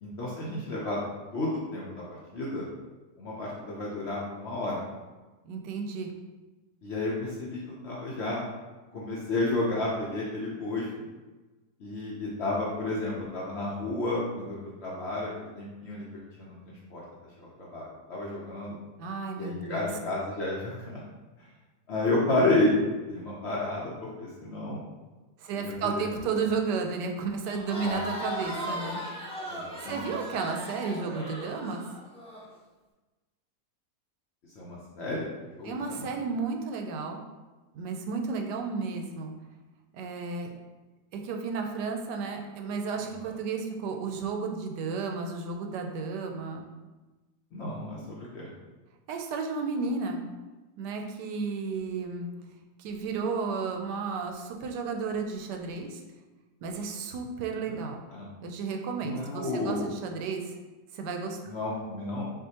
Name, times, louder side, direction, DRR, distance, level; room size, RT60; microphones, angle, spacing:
voice 1, 0.0-1.0 1.3-2.0 2.3-2.7 3.2-4.8 6.8-7.6 7.8-8.5 8.9-11.1 11.8-17.0 17.4-18.8 19.4-21.0 21.9-24.8 25.5-26.0 26.4-26.5 27.8-28.0 29.5-30.1 34.6-36.1 47.5-48.5 57.7-58.3 59.0-59.9 61.4-62.3, left 2 dB, 60° left, -5 dB, 0.7 m, -31 dB
voice 2, 5.4-6.1 19.0-19.9 25.4-29.0 29.5-31.8 35.6-37.2 37.7-39.3 39.9-40.5 41.1-46.6 49.1-50.3 50.8-52.3 52.8-56.0 56.6-58.0 58.4-60.5 60.9-61.4, right 4 dB, 85° right, 3 dB, 1.2 m, -33 dB
Crowd, 27.5-32.4, equal, 5° left, 0.5 m, -37 dB
6.1 x 2.5 x 2.8 m, 1.2 s
omnidirectional pair, 1.8 m